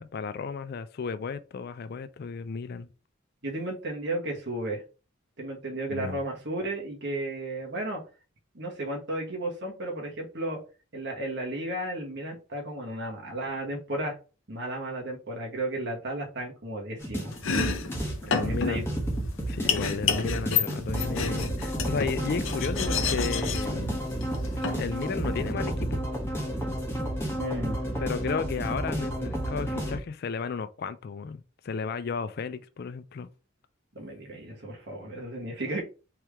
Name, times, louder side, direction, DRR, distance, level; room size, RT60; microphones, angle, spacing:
voice 1, 0.0-2.9 5.9-6.2 18.3-18.8 19.5-24.1 24.8-26.0 28.0-33.3, left 5 dB, 50° left, 0.4 m, -33 dB
voice 2, 3.4-4.8 5.4-8.0 8.5-10.6 10.9-14.1 14.5-18.8 27.4-27.8 33.9-35.8, right 1 dB, 55° right, 1.6 m, -34 dB
sound 1, 17.0-30.0, right 1 dB, 10° left, 1.2 m, -31 dB
Domestic sounds home sounds, 17.3-25.5, left 6 dB, 70° left, 0.7 m, -31 dB
4.5 x 3.2 x 3.5 m
head